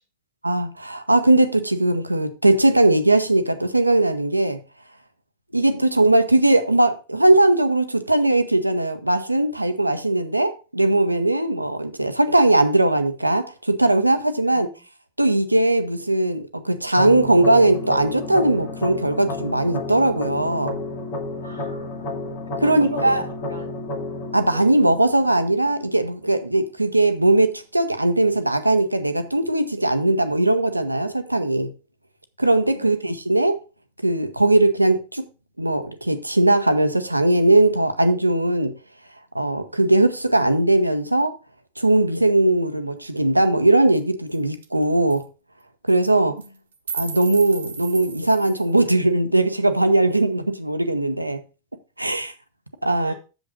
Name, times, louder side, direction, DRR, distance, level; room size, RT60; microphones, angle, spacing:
voice 1, 0.4-4.6 5.5-14.7 15.2-20.8 22.6-23.2 24.3-31.7 32.4-33.6 34.0-35.2 35.6-38.7 39.3-41.3 41.8-45.2 45.9-46.4 46.9-51.4 52.0-52.3 52.8-53.1, right 2 dB, 85° right, 0.9 m, -19 dB
voice 2, 14.4-14.7 21.4-22.3 22.6-23.8 24.5-24.7 32.7-33.0 46.2-46.6 53.0-53.1, left 1 dB, 85° left, 2.6 m, -37 dB
sound 1, 17.0-25.9, left 2 dB, 50° left, 2.0 m, -31 dB
sound 2, 44.0-44.1 44.3-44.4 44.6-44.8 45.1-45.2 45.9-46.1 46.4-48.7, right 5 dB, 65° right, 1.1 m, -35 dB
8.0 x 7.0 x 3.9 m
figure-of-eight pair, 90°, 0 cm